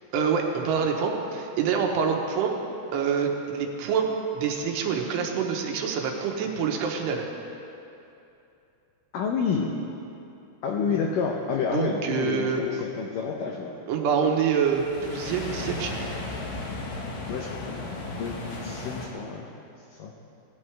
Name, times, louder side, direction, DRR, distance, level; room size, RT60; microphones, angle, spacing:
voice 1, 0.1-2.6 2.9-7.3 10.9-11.0 11.7-12.6 13.9-16.1, right 6 dB, 75° right, 2 dB, 3.0 m, -26 dB
voice 2, 9.1-9.7 10.6-13.7 17.3-17.8 18.2-18.4 18.6-19.5 19.9-20.1, left 5 dB, 85° left, 0 dB, 1.9 m, -29 dB
sound 1, 14.5-19.1, left 2 dB, 60° left, 2.7 m, -35 dB
17.5 x 14.0 x 3.4 m, 2.8 s
omnidirectional pair, 5.1 m